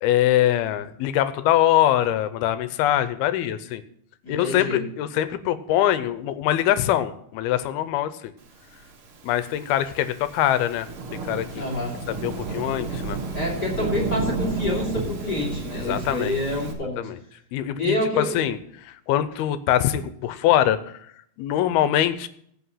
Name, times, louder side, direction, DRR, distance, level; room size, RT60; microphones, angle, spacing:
voice 1, 0.0-3.8 4.3-8.3 9.2-10.9 11.2-11.5 12.1-13.2 15.7-16.4 17.0-17.2 17.5-20.8 21.4-22.3, left 12 dB, 85° left, 13 dB, 2.6 m, -23 dB
voice 2, 4.2-4.8 11.5-12.0 13.3-17.1 17.8-18.4, left 2 dB, 30° left, -3 dB, 3.0 m, -27 dB
Thunderstorm / Rain, 9.0-16.7, right 3 dB, 50° right, 1.7 m, -31 dB
16.0 x 5.5 x 5.6 m, 0.67 s
omnidirectional pair, 4.4 m